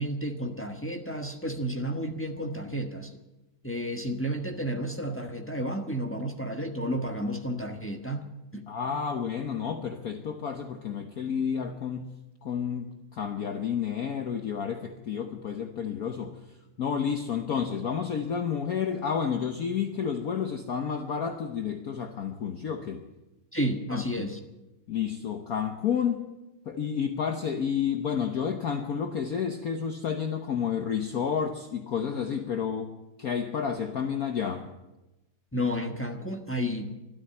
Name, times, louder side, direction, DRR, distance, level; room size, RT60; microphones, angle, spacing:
voice 1, 0.0-3.2 3.6-8.2 8.5-8.7 23.5-24.4 35.5-36.9, equal, 10° left, 3 dB, 0.9 m, -31 dB
voice 2, 8.7-12.1 12.4-16.3 16.8-23.0 23.9-24.3 24.9-26.3 26.7-32.9 33.2-34.7, left 7 dB, 55° left, 6 dB, 1.1 m, -30 dB
13.0 x 12.5 x 8.8 m, 1.0 s
omnidirectional pair, 2.3 m